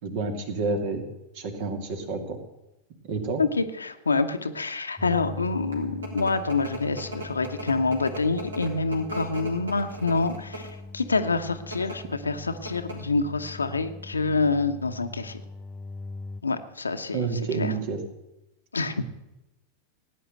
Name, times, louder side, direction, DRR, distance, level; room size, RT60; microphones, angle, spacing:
voice 1, 0.0-1.0 1.3-2.4 3.0-3.4 17.1-18.0, right 4 dB, 50° right, 6 dB, 2.5 m, -29 dB
voice 2, 3.4-10.7 10.9-15.4 16.4-17.7 18.7-19.0, left 3 dB, 75° left, 9 dB, 1.0 m, -27 dB
sound 1, 5.0-16.4, left 3 dB, 10° left, 0.8 m, -42 dB
sound 2, 5.4-10.9 11.6-12.0 12.3-12.4 12.7-13.1, right 1 dB, 70° right, 3.5 m, -38 dB
17.0 x 9.6 x 7.8 m, 0.93 s
figure-of-eight pair, 90°, 0 cm